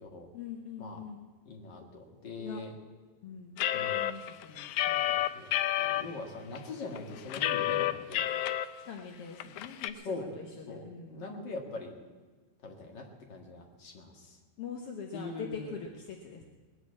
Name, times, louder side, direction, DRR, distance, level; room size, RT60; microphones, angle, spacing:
voice 1, 0.3-1.3 1.8-1.9 2.4-2.6 3.2-5.2 8.8-11.2 14.6-16.4, left 6 dB, 65° left, 2 dB, 1.5 m, -43 dB
voice 2, 1.5-2.7 3.7-4.0 5.1-8.2 10.0-10.3 10.7-11.9 12.6-14.4 15.1-15.8, left 3 dB, 35° left, 1 dB, 2.1 m, -42 dB
sound 1, 3.6-6.0 6.5-6.6 7.0-8.6 9.0-9.1 9.4-9.9, left 13 dB, 90° left, 1.7 m, -29 dB
20.0 x 8.1 x 8.6 m, 1.4 s
omnidirectional pair, 4.1 m